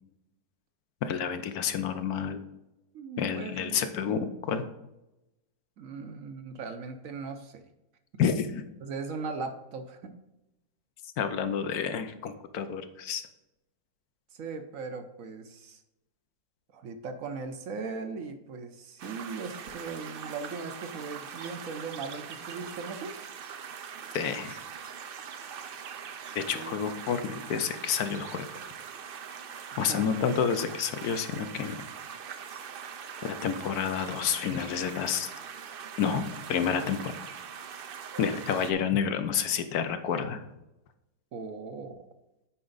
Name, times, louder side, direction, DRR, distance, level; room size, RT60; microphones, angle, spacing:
voice 1, 1.0-2.4 3.2-4.7 8.2-8.6 11.2-13.3 24.1-24.6 26.3-28.5 29.8-31.8 33.2-35.3 36.0-37.1 38.2-40.4, left 7 dB, 70° left, 10 dB, 1.2 m, -29 dB
voice 2, 2.9-3.8 4.1-4.2 5.8-7.6 8.8-10.1 14.3-15.8 16.7-23.2 26.5-26.8 29.9-30.2 41.3-42.0, right 4 dB, 65° right, 7 dB, 1.0 m, -39 dB
sound 1, 19.0-38.7, right 7 dB, 80° right, 0.5 m, -42 dB
8.6 x 4.9 x 3.9 m, 0.94 s
omnidirectional pair, 1.7 m